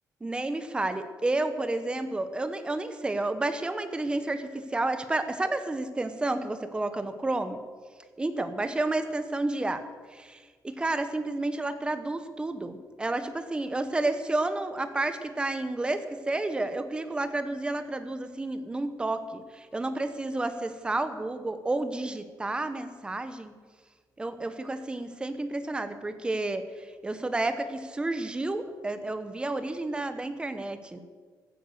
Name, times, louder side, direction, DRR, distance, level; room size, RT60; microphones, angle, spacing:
voice 1, 0.2-7.6 8.2-9.8 10.1-23.5 24.2-31.0, right 2 dB, 15° right, 10 dB, 1.0 m, -31 dB
15.0 x 9.4 x 6.5 m, 1.5 s
cardioid pair, 155°, 7 cm